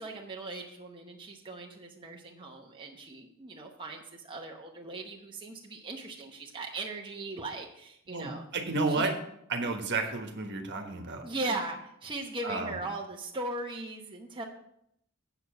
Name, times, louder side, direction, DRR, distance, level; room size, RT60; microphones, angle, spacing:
voice 1, 0.0-8.4 8.9-9.1 11.2-14.4, right 2 dB, 25° right, 0 dB, 0.9 m, -39 dB
voice 2, 8.1-9.1 9.5-11.2 12.4-12.8, right 3 dB, 55° right, 4 dB, 1.4 m, -31 dB
7.9 x 6.8 x 5.9 m, 0.74 s
head